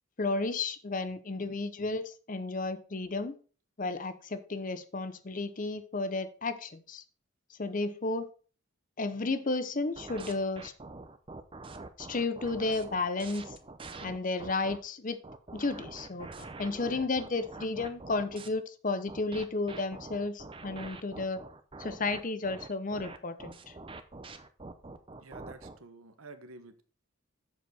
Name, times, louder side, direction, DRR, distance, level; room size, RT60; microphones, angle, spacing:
voice 1, 0.2-3.3 3.8-7.0 7.6-8.3 9.0-10.7 12.0-13.5 14.0-15.2 15.5-21.4 21.8-23.6, left 3 dB, 40° left, 0.6 m, -33 dB
sound 1, 9.9-14.8 15.2-18.5 19.1-25.8, right 3 dB, 25° right, 0.6 m, -45 dB
voice 2, 25.2-26.8, right 3 dB, 80° right, 1.0 m, -50 dB
7.4 x 6.6 x 4.2 m
head